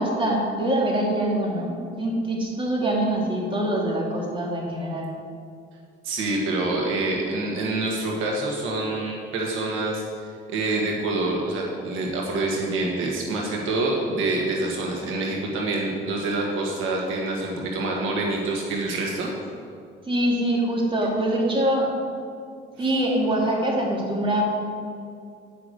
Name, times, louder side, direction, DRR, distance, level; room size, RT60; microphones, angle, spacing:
voice 1, 0.0-5.1 20.1-21.9 22.8-24.4, right 1 dB, 25° right, -3 dB, 2.6 m, -24 dB
voice 2, 6.0-10.0 10.5-19.3, right 2 dB, 90° right, -1 dB, 1.6 m, -26 dB
9.6 x 5.9 x 6.7 m, 2.3 s
cardioid pair, 90°, 20 cm